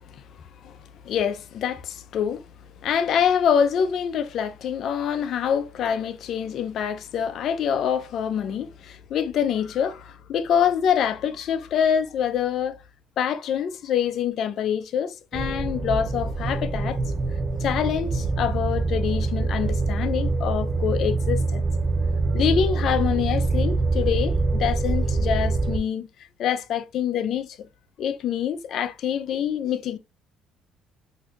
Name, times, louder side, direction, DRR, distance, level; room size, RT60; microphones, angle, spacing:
voice 1, 1.0-2.4 2.8-12.8 13.2-17.0 17.6-21.6 22.3-26.1 26.4-27.7 28.0-30.0, left 8 dB, 60° left, 0.4 m, -25 dB
sound 1, 15.3-25.8, right 3 dB, 35° right, 0.5 m, -25 dB
2.6 x 2.3 x 3.6 m
cardioid pair, 100°, 0 cm